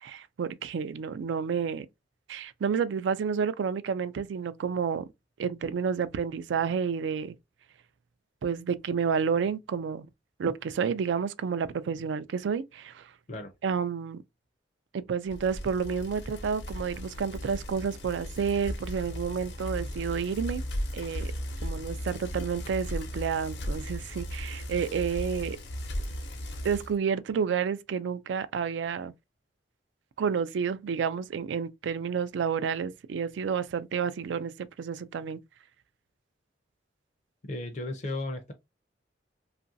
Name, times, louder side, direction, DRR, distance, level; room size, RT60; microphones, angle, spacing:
voice 1, 0.0-1.9 2.3-5.1 5.4-7.4 8.4-10.1 10.4-13.1 13.6-14.2 14.9-20.6 20.9-21.3 21.6-25.6 26.6-29.1 30.2-35.4, right 6 dB, 85° right, 0.3 m, -30 dB
Bicycle, 15.3-27.0, equal, 80° left, 0.8 m, -36 dB
voice 2, 37.5-38.5, left 2 dB, 40° left, 0.5 m, -34 dB
3.0 x 2.4 x 2.6 m
head